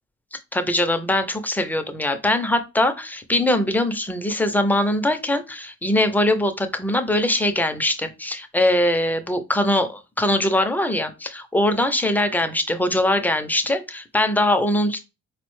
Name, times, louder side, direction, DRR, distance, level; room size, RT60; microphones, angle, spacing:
voice 1, 0.5-15.0, left 1 dB, 5° left, 0.4 m, -22 dB
3.9 x 2.1 x 3.0 m
cardioid pair, 90°, 30 cm